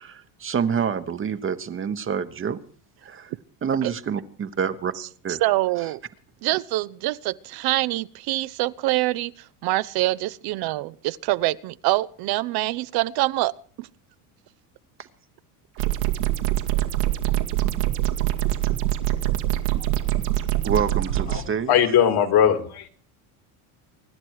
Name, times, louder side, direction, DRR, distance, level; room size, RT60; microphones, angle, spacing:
voice 1, 0.0-2.6 3.0-3.3 3.6-4.9 5.2-5.4 5.8-5.9 15.8-15.9 20.6-21.7, right 7 dB, 30° right, 1.0 m, -27 dB
voice 2, 5.3-6.0 6.4-9.3 9.6-13.9, right 18 dB, 55° right, 0.7 m, -25 dB
sound 1, 15.8-21.4, right 14 dB, 80° right, 2.1 m, -24 dB
voice 3, 21.3-22.9, left 9 dB, 55° left, 2.5 m, -20 dB
25.0 x 10.5 x 4.8 m
supercardioid pair, 105°, 45 cm